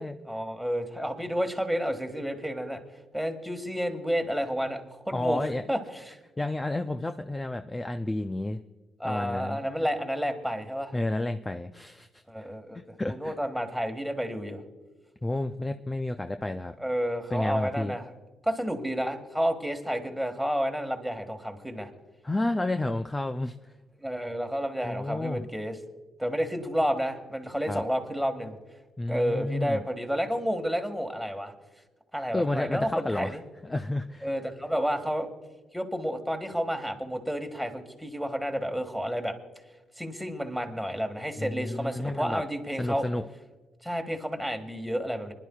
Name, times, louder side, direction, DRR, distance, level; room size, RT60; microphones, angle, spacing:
voice 1, 0.2-2.8 3.1-5.4 5.7-6.2 9.0-10.9 12.3-14.6 16.8-18.0 18.4-21.9 24.0-25.8 26.2-28.6 29.1-31.5 32.1-33.4 34.2-35.3 35.7-39.4 40.0-43.1 43.8-45.3, equal, ahead, 4 dB, 1.8 m, -30 dB
voice 2, 5.1-5.6 6.4-8.6 9.0-9.6 10.9-12.5 12.7-13.3 15.2-16.7 17.3-17.9 22.2-23.6 24.8-25.4 27.7-27.8 29.0-29.8 32.3-33.4 33.6-34.3 41.4-42.4 42.8-43.2, left 2 dB, 15° left, 8 dB, 0.5 m, -31 dB
24.5 x 11.0 x 2.4 m, 1.2 s
cardioid pair, 90°, 0 cm